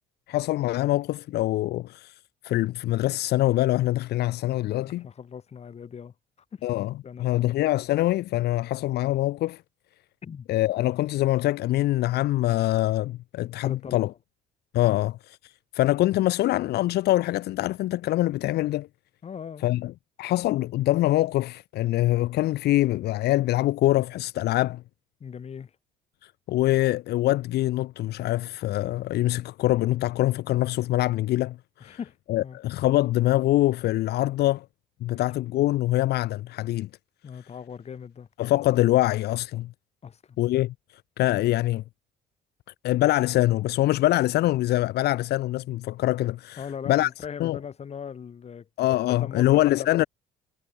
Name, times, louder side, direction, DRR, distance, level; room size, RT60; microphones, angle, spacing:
voice 1, 0.3-2.1 2.4-5.0 6.6-6.9 7.2-9.6 10.5-14.1 14.7-15.4 15.7-18.9 19.6-19.9 20.2-24.8 26.5-31.6 31.8-32.0 32.3-34.6 35.0-36.9 38.4-39.7 40.4-40.7 41.2-41.8 42.8-46.6 46.9-47.1 47.4-47.6 48.8-50.0, left 16 dB, 75° left, 1.4 m, -24 dB
voice 2, 4.8-6.1 6.5-6.6 7.0-7.5 10.2-10.5 13.6-14.1 14.9-15.0 19.2-19.7 25.2-25.7 31.8-32.6 35.1-35.2 37.2-38.3 40.0-40.4 46.6-48.7 49.1-49.9, left 7 dB, 40° left, 3.4 m, -39 dB
cardioid pair, 110°, 17 cm